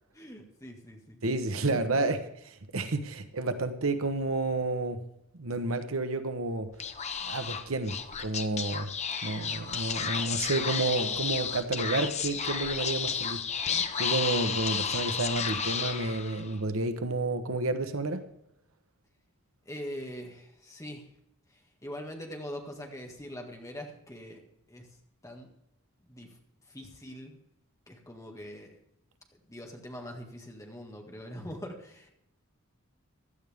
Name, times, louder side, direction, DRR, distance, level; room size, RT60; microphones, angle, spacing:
voice 1, 0.1-1.2 1.6-2.2 19.7-21.1 21.5-24.4 24.7-24.9 25.2-25.5 26.0-26.4 26.7-27.4 27.9-28.8 29.4-32.1, equal, 15° left, 2 dB, 1.8 m, -43 dB
voice 2, 1.2-2.2 2.7-5.0 5.4-6.7 7.2-8.0 8.2-8.9 9.2-13.4 14.0-18.2, right 2 dB, 70° right, 9 dB, 1.1 m, -30 dB
Speech / Whispering, 6.7-16.5, left 7 dB, 30° left, 0.8 m, -32 dB
16.0 x 12.0 x 3.6 m, 0.82 s
head